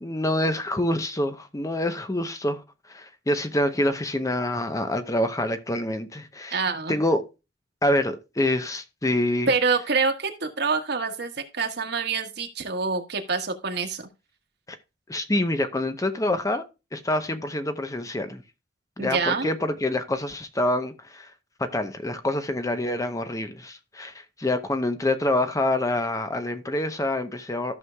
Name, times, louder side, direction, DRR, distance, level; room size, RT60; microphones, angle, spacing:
voice 1, 0.0-2.6 2.9-6.6 6.9-7.2 7.8-9.5 15.1-16.6 16.9-18.4 19.0-21.3 21.6-27.8, left 1 dB, 20° left, 0.8 m, -26 dB
voice 2, 6.5-7.0 9.5-14.0 19.0-19.5, right 4 dB, 65° right, 1.4 m, -26 dB
14.0 x 6.3 x 2.2 m
head